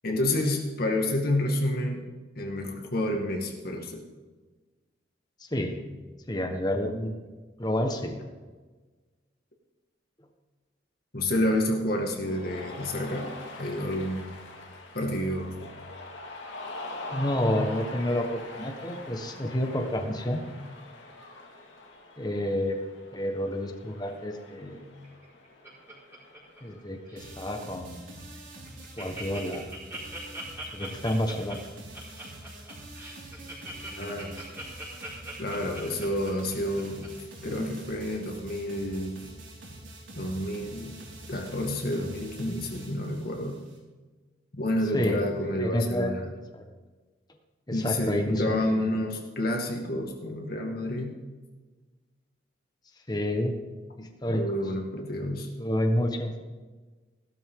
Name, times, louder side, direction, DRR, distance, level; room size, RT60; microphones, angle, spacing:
voice 1, 0.0-2.0 2.4-4.0 11.1-14.3 14.9-15.6 34.0-34.4 35.4-37.1 37.4-39.2 40.1-41.0 41.3-43.6 44.5-46.3 47.7-51.2 54.0-55.5, left 1 dB, 50° left, 1 dB, 2.0 m, -29 dB
voice 2, 5.5-5.8 6.3-7.2 7.6-8.1 17.1-20.4 22.2-22.8 23.1-24.8 26.6-28.1 29.0-29.7 30.7-31.6 44.9-45.2 45.6-46.2 46.5-46.6 47.7-48.6 53.1-53.5 54.0-54.4 55.2-56.4, left 1 dB, 20° left, 4 dB, 1.4 m, -29 dB
Cheering, 12.2-27.0, left 2 dB, 80° left, 2.2 m, -43 dB
Laughter, 25.0-26.8 27.1-27.4 27.9-28.0 28.3-28.4 28.6-37.1 37.5-37.6, right 1 dB, 15° right, 4.6 m, -41 dB
sound 1, 27.2-43.8, right 1 dB, 90° right, 4.7 m, -46 dB
16.5 x 12.5 x 3.8 m, 1.3 s
head